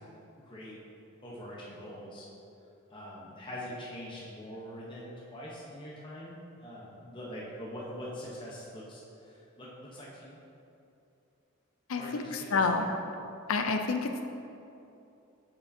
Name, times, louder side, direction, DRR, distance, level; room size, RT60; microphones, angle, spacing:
voice 1, 0.4-0.8 1.2-2.3 2.9-10.4 12.0-12.9, equal, 25° left, -6 dB, 0.8 m, -43 dB
voice 2, 11.9-13.0 13.5-14.2, left 4 dB, 80° left, 6 dB, 0.5 m, -29 dB
8.5 x 4.9 x 2.7 m, 2.8 s
head